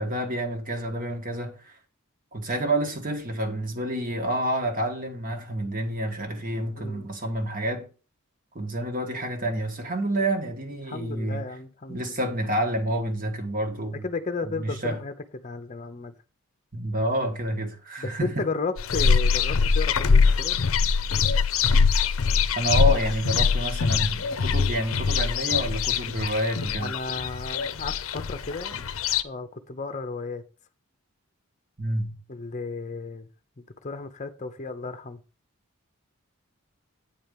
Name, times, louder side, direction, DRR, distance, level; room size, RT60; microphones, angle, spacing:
voice 1, 0.0-1.8 2.3-7.9 8.5-11.4 11.9-14.1 14.4-15.0 16.7-18.5 22.5-26.9 31.8-32.2, right 1 dB, 40° right, 1.5 m, -28 dB
voice 2, 6.8-7.1 10.7-12.3 14.0-15.1 15.4-16.1 18.0-20.6 26.8-28.8 29.2-30.4 32.3-33.3 33.6-35.2, left 3 dB, 35° left, 0.7 m, -34 dB
sound 1, 18.8-29.2, left 5 dB, 70° left, 0.6 m, -23 dB
8.9 x 4.4 x 5.3 m
head